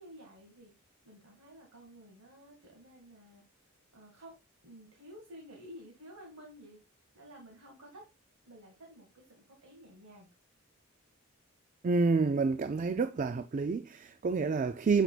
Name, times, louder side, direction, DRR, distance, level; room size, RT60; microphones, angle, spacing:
voice 1, 0.0-3.4 3.9-4.4 4.6-6.8 7.1-8.1 8.4-10.3, equal, 70° right, 2.2 m, -52 dB
voice 2, 11.8-15.0, right 4 dB, 35° right, 0.3 m, -28 dB
8.0 x 5.9 x 2.4 m
head